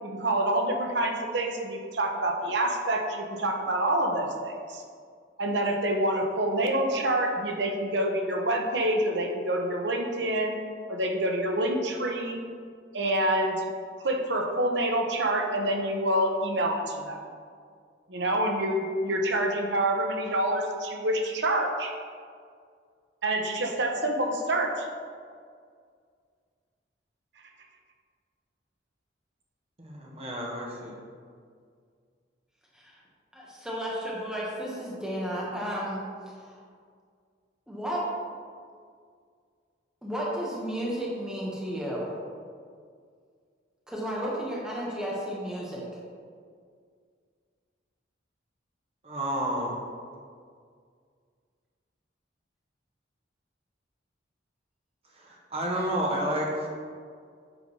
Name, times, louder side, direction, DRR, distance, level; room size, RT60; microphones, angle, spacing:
voice 1, 0.0-4.8 5.4-10.6 10.9-12.4 12.9-13.6 14.0-17.2 18.1-21.9 23.2-24.9, right 1 dB, 65° right, 2 dB, 0.9 m, -27 dB
voice 2, 29.8-31.0 49.0-49.8 55.1-56.7, right 1 dB, 35° right, -2 dB, 1.3 m, -30 dB
voice 3, 33.3-36.6 37.7-38.0 40.0-42.2 43.9-45.8, equal, 5° right, -6 dB, 1.2 m, -33 dB
8.1 x 3.8 x 5.4 m, 2.1 s
head